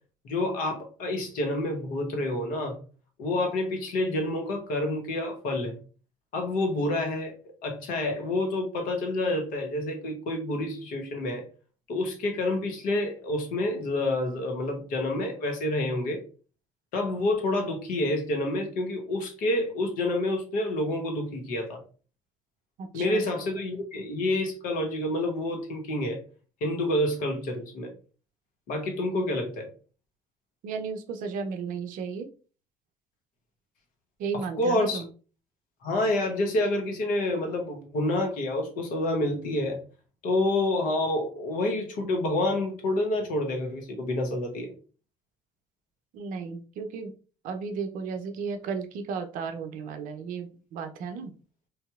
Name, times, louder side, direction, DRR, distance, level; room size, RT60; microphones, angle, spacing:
voice 1, 0.2-2.8 3.2-5.8 6.3-7.3 7.6-11.5 11.9-16.2 16.9-21.8 22.9-26.2 26.6-27.9 28.7-29.7 34.6-35.0 35.8-39.8 40.2-44.7, left 1 dB, 60° left, 3 dB, 0.9 m, -28 dB
voice 2, 22.8-23.3 30.6-32.3 34.2-35.1 46.1-47.1 47.4-51.3, right 5 dB, 60° right, 7 dB, 0.5 m, -34 dB
3.2 x 2.7 x 2.3 m, 0.37 s
hypercardioid pair, 60°, 16 cm